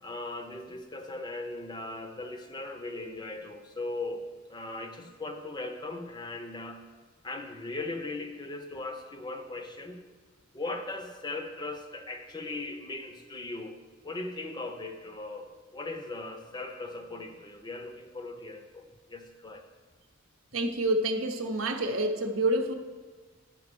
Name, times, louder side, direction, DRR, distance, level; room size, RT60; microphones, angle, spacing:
voice 1, 0.0-4.2 4.5-6.8 7.2-10.0 10.5-13.8 14.0-19.6, left 2 dB, 20° left, 6 dB, 0.6 m, -38 dB
voice 2, 20.5-22.7, right 1 dB, 70° right, 6 dB, 0.7 m, -28 dB
9.8 x 4.5 x 6.7 m, 1.5 s
head